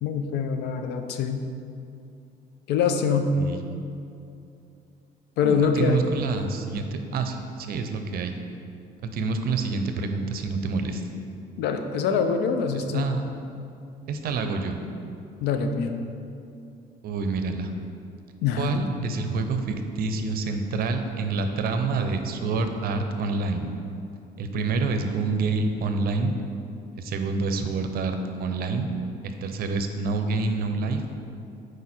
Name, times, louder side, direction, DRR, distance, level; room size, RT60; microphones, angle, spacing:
voice 1, 0.0-1.4 2.7-3.3 5.4-6.1 11.6-13.1 15.4-16.0 18.4-18.8, left 6 dB, 85° left, 6 dB, 0.7 m, -24 dB
voice 2, 5.4-8.4 9.0-11.0 12.7-13.2 14.1-14.8 17.0-17.7 18.6-23.7 24.4-26.3 27.0-28.9 29.2-31.0, right 4 dB, 65° right, 6 dB, 0.7 m, -27 dB
8.2 x 5.1 x 4.4 m, 2.6 s
cardioid pair, 110°, 17 cm